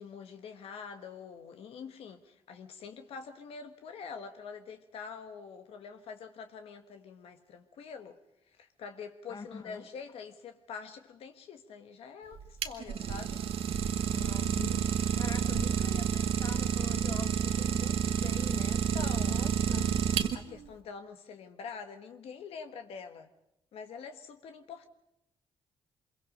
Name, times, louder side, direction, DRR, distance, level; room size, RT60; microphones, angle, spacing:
voice 1, 0.0-8.2 8.6-13.4 18.7-23.3 23.7-24.9, left 5 dB, 90° left, 6 dB, 1.4 m, -45 dB
voice 2, 9.3-9.9 14.1-20.1, left 4 dB, 40° left, 9 dB, 1.8 m, -44 dB
Idling, 12.3-20.7, right 8 dB, 85° right, 1.3 m, -29 dB
25.0 x 22.5 x 5.4 m, 0.84 s
cardioid pair, 85°, 10 cm